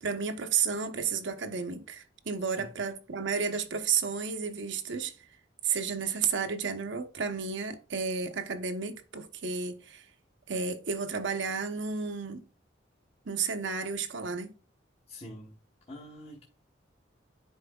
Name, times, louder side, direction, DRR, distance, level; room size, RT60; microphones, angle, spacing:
voice 1, 0.0-5.1 5.6-10.0 10.5-12.4 13.3-14.5, right 5 dB, 80° right, 0.8 m, -32 dB
voice 2, 15.1-15.5 15.9-16.4, left 1 dB, 35° left, 1.1 m, -45 dB
10.5 x 4.5 x 2.3 m
head